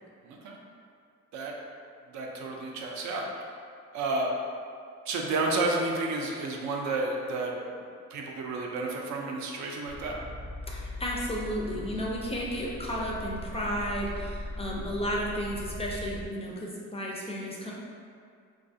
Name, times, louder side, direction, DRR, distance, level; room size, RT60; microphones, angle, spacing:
voice 1, 0.2-0.6 1.3-1.5 2.1-3.3 3.9-4.3 5.1-7.5 8.1-10.2, right 2 dB, 70° right, 0 dB, 0.4 m, -31 dB
sound 1, 9.9-16.3, left 1 dB, 20° right, 0.6 m, -39 dB
voice 2, 10.7-17.7, equal, 20° left, -3 dB, 0.3 m, -33 dB
2.4 x 2.2 x 2.5 m, 2.3 s
cardioid pair, 90°, 30 cm